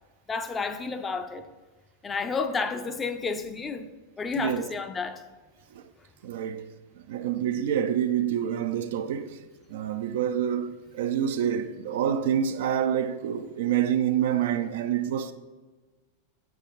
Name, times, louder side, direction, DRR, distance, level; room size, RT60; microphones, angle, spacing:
voice 1, 0.3-1.5 2.0-3.9 4.2-5.2, left 4 dB, 15° left, 0.5 m, -31 dB
voice 2, 4.4-4.7 5.7-5.8 6.2-6.7 7.0-9.4 9.7-15.3, right 9 dB, 55° right, 0.4 m, -27 dB
8.1 x 5.9 x 3.1 m
figure-of-eight pair, 90°, 0 cm